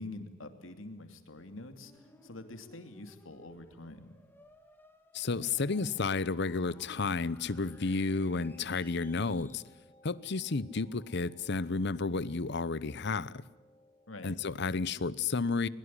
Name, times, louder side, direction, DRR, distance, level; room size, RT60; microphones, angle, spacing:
voice 1, 0.0-4.1 14.1-14.4, left 2 dB, 90° left, 8 dB, 2.7 m, -46 dB
sound 1, 1.4-9.6, left 1 dB, 10° left, 2.2 m, -60 dB
voice 2, 5.1-9.6 10.0-13.4 14.2-15.7, left 4 dB, 60° left, 19 dB, 0.9 m, -32 dB
sound 2, 6.6-14.5, left 1 dB, 25° left, 3.6 m, -62 dB
21.5 x 21.5 x 10.0 m, 1.2 s
head